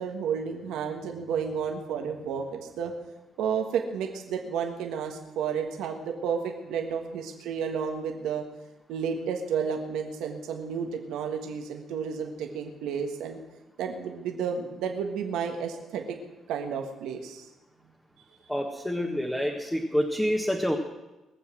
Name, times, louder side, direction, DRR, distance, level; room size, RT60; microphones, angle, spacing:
voice 1, 0.0-2.9 3.4-8.4 8.9-13.4 13.8-16.2 16.5-17.5, right 6 dB, 90° right, 2 dB, 1.5 m, -31 dB
voice 2, 18.5-20.8, equal, 5° left, 1 dB, 1.6 m, -27 dB
20.5 x 7.3 x 6.2 m, 1.1 s
cardioid pair, 90°, 0 cm